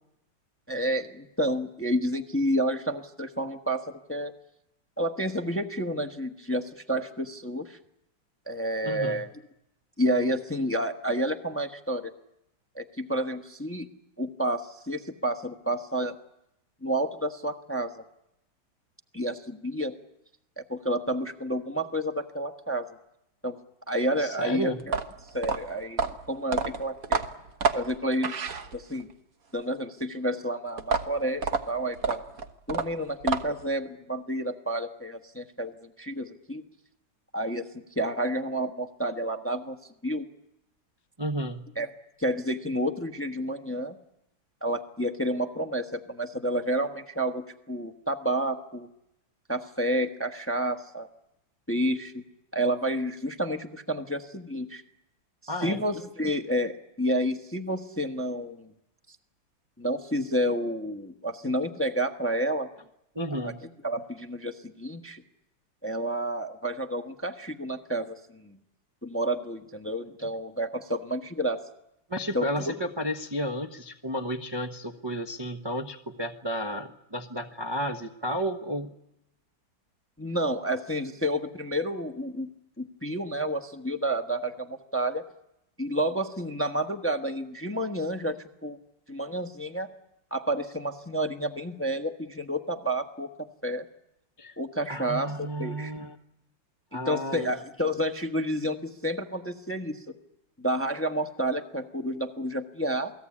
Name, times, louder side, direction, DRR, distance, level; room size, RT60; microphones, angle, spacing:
voice 1, 0.7-4.3 5.0-7.8 8.5-9.3 10.0-12.1 12.7-13.9 14.2-16.1 16.8-18.0 19.1-19.9 20.6-22.9 23.4-23.6 23.9-24.9 25.3-27.2 27.7-28.3 28.7-29.1 29.5-32.2 32.7-36.6 37.3-39.8 40.0-40.2 41.8-41.9 42.2-43.9 44.6-48.9 49.5-51.1 51.7-52.2 52.5-54.8 55.6-58.7 59.8-62.7 63.4-63.5 63.8-65.2 65.8-68.6 69.0-71.6 72.3-72.7 80.2-82.5 82.8-85.2 85.8-88.4 88.6-88.8 89.1-89.9 90.3-93.3 93.6-93.8 94.6-95.9 97.1-100.0 100.6-103.1, right 1 dB, 10° left, 6 dB, 0.9 m, -30 dB
voice 2, 8.8-9.2 24.2-24.8 41.2-41.7 55.5-55.8 63.1-63.6 70.2-70.3 72.1-78.9 94.4-94.6 94.9-96.2 96.9-97.6, equal, 20° right, 2 dB, 0.7 m, -32 dB
sound 1, 24.8-29.1 30.8-33.7, right 5 dB, 50° right, 1.6 m, -29 dB
28.5 x 19.5 x 8.6 m, 0.85 s
omnidirectional pair, 2.1 m